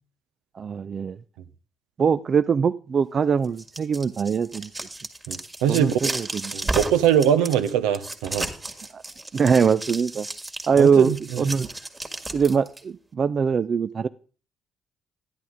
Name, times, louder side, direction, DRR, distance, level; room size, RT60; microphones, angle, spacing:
voice 1, 0.5-1.2 2.0-4.7 5.7-6.5 8.9-9.0 9.3-10.3 10.7-11.7 12.3-14.1, right 6 dB, 50° right, 0.4 m, -22 dB
sound 1, 3.4-12.8, right 2 dB, 20° right, 1.9 m, -33 dB
voice 2, 5.3-5.9 6.5-8.5 10.8-11.4, right 9 dB, 80° right, 0.7 m, -22 dB
11.0 x 10.5 x 3.6 m
hypercardioid pair, 45°, 0 cm